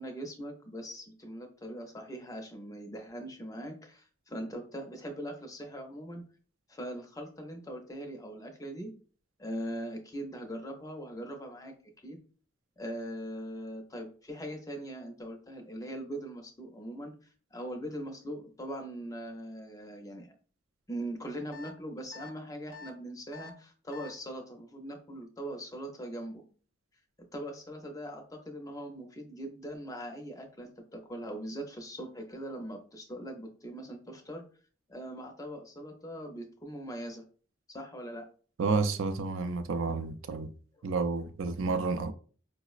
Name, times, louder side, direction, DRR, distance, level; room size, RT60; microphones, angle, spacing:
voice 1, 0.0-6.2 6.7-8.9 9.4-11.7 12.0-12.2 12.8-20.3 20.9-26.4 27.3-34.4 34.9-37.3 37.7-38.2 40.8-40.9, right 1 dB, 15° left, 0.5 m, -41 dB
sound 1, 21.5-21.7 22.1-22.3 22.7-22.9 23.3-23.5 23.9-24.1, left 4 dB, 90° left, 0.6 m, -46 dB
voice 2, 38.6-40.5 40.8-42.1, right 4 dB, 85° right, 0.4 m, -30 dB
4.8 x 2.0 x 2.3 m
head